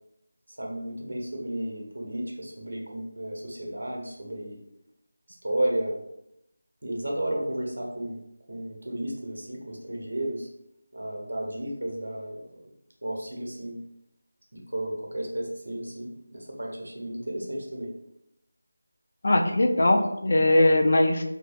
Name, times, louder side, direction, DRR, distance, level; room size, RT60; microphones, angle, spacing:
voice 1, 0.6-4.6 5.4-6.0 6.8-8.2 8.5-10.5 10.9-12.4 13.0-13.8 14.5-17.9, right 1 dB, 75° right, 0 dB, 0.7 m, -33 dB
voice 2, 19.2-21.2, left 1 dB, 50° left, 4 dB, 0.3 m, -20 dB
2.6 x 2.0 x 2.5 m, 0.81 s
figure-of-eight pair, 170°, 0 cm